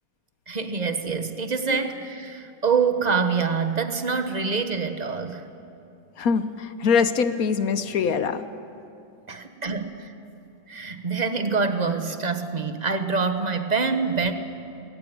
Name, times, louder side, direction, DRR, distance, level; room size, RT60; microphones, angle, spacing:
voice 1, 0.5-5.4 9.3-10.1 10.7-14.3, right 5 dB, 25° right, 7 dB, 1.0 m, -25 dB
voice 2, 6.2-8.4, left 6 dB, 60° left, 11 dB, 1.1 m, -23 dB
21.0 x 18.0 x 9.3 m, 2.7 s
omnidirectional pair, 2.1 m